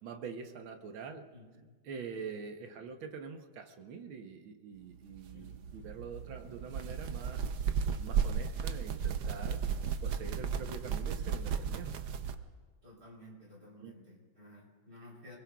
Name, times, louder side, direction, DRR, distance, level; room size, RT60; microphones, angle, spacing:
voice 1, 0.0-1.3 1.8-7.5 8.0-9.6 10.0-11.9 13.8-13.9, right 5 dB, 80° right, 5 dB, 1.8 m, -45 dB
voice 2, 1.3-1.6 5.3-5.6 12.8-15.4, left 1 dB, 30° right, -3 dB, 4.0 m, -54 dB
sound 1, 5.1-12.3, right 7 dB, 65° right, 1.2 m, -35 dB
27.5 x 21.0 x 2.3 m, 1.5 s
omnidirectional pair, 2.2 m